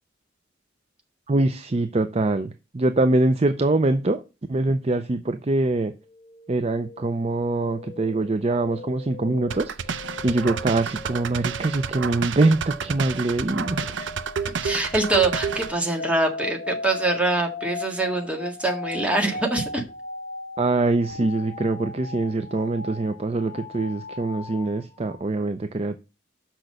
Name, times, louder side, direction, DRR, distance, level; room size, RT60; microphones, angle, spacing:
voice 1, 1.3-4.2 4.5-5.9 6.5-13.9 20.6-26.0, right 2 dB, 35° right, 0.5 m, -24 dB
sound 1, 6.0-25.2, left 3 dB, 45° left, 1.6 m, -38 dB
sound 2, 9.5-15.7, right 6 dB, 80° right, 0.6 m, -30 dB
voice 2, 14.6-19.8, right 2 dB, 5° right, 1.8 m, -24 dB
6.1 x 6.0 x 6.5 m
head